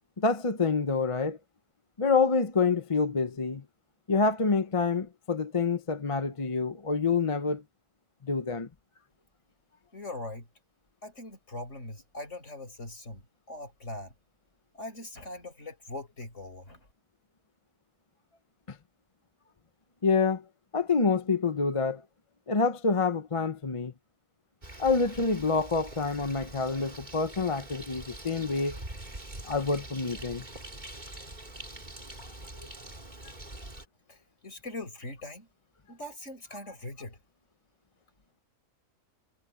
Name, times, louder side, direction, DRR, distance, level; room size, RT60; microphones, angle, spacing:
voice 1, 0.2-1.4 2.0-3.6 4.1-7.6 8.2-8.7 18.7-18.8 20.0-20.4 20.7-22.0 22.5-23.9 24.8-28.8 29.4-30.4, left 4 dB, 30° left, 0.8 m, -27 dB
voice 2, 9.9-10.5 11.0-14.1 14.7-16.9 34.1-35.5 35.9-37.2, left 2 dB, 55° left, 5.9 m, -41 dB
Bird, 24.6-33.9, right 1 dB, 30° right, 3.8 m, -44 dB
omnidirectional pair, 1.5 m